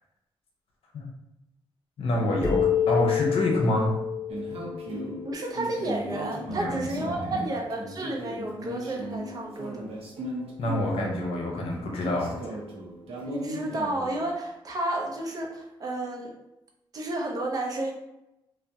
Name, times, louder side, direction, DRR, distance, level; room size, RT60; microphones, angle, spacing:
voice 1, 2.0-4.0 6.5-7.4 10.6-12.6, left 1 dB, 75° left, 0 dB, 0.7 m, -27 dB
sound 1, 2.4-5.9, left 8 dB, 25° left, 1.3 m, -28 dB
sound 2, 4.3-14.3, right 1 dB, 85° right, 0.6 m, -37 dB
voice 2, 5.2-9.9 13.3-16.3 16.9-17.9, right 1 dB, 40° right, 0 dB, 0.5 m, -31 dB
3.4 x 2.1 x 2.6 m, 0.91 s
wide cardioid pair, 155°, 10 cm